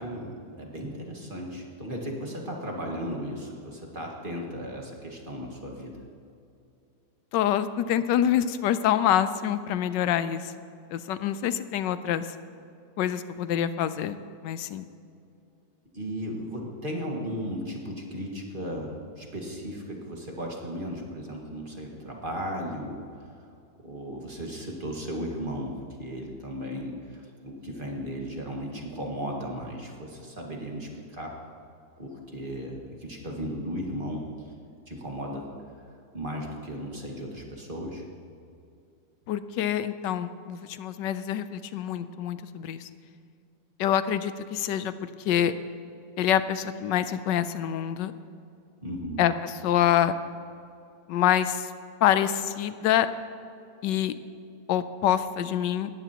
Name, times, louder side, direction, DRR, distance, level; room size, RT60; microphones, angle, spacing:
voice 1, 0.0-6.0 15.9-23.0 23.8-31.3 32.0-34.5 34.9-35.5 36.1-38.0 48.8-49.2, equal, 30° right, -1 dB, 1.8 m, -35 dB
voice 2, 7.3-10.5 10.9-12.3 13.0-14.2 14.4-14.8 39.3-42.9 43.8-45.5 46.2-48.1 49.2-50.1 51.1-51.7 52.0-53.1 53.8-54.2 54.7-55.9, left 10 dB, 90° left, 12 dB, 1.3 m, -26 dB
19.0 x 14.5 x 2.9 m, 2.6 s
omnidirectional pair, 1.9 m